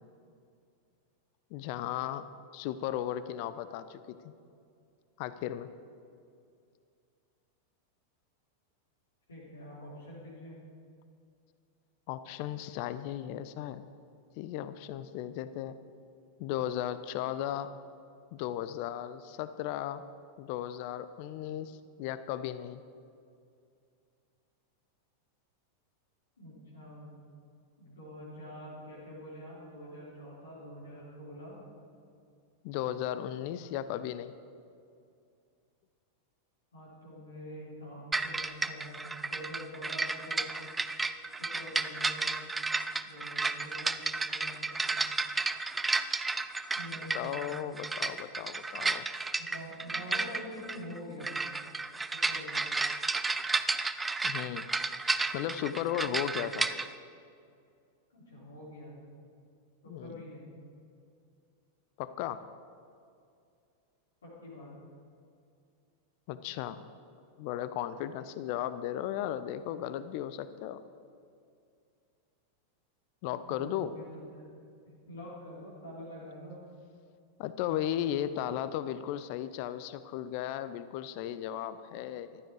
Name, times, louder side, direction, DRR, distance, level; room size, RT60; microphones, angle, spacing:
voice 1, 1.5-4.2 5.2-5.7 12.1-13.8 14.4-15.8 16.4-17.7 18.3-20.1 20.4-22.8 32.6-34.3 47.1-49.1 54.2-54.7 55.3-56.7 59.9-60.2 62.0-62.4 66.3-66.8 67.4-70.8 73.2-73.9 77.4-82.4, left 11 dB, 45° left, 13 dB, 0.5 m, -36 dB
voice 2, 9.3-10.6 26.4-27.2 27.8-31.6 36.7-40.5 41.4-42.5 43.0-45.0 46.7-47.7 49.4-51.5 52.1-52.6 58.1-58.9 59.8-60.5 64.2-64.7 73.5-74.0 74.3-74.4 74.9-76.6, equal, 70° left, -8 dB, 4.3 m, -46 dB
sound 1, 38.1-56.9, right 3 dB, 10° right, 0.5 m, -32 dB
14.5 x 12.5 x 4.8 m, 2.4 s
figure-of-eight pair, 90°, 0 cm